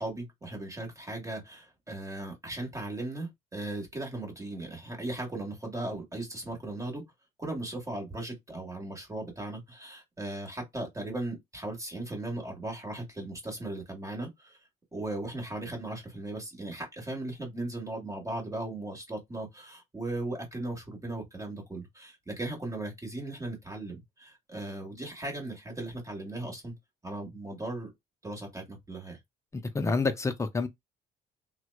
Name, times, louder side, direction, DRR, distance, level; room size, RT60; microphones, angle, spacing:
voice 1, 0.0-7.0 7.4-14.6 14.9-26.7 27.0-27.9 28.2-29.2, right 2 dB, 20° right, 1.4 m, -37 dB
voice 2, 29.5-30.7, left 4 dB, 15° left, 0.5 m, -28 dB
2.8 x 2.1 x 2.2 m
cardioid pair, 110°, 17 cm